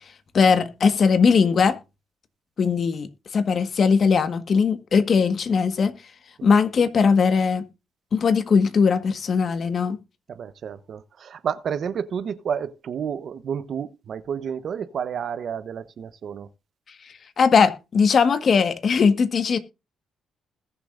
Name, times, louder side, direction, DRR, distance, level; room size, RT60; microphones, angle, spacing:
voice 1, 0.3-1.8 2.6-5.9 6.4-7.6 8.1-10.0 17.4-19.6, left 5 dB, 50° left, 1.6 m, -19 dB
voice 2, 10.3-16.5, right 7 dB, 60° right, 0.9 m, -30 dB
20.5 x 6.9 x 2.6 m
cardioid pair, 90°, 0 cm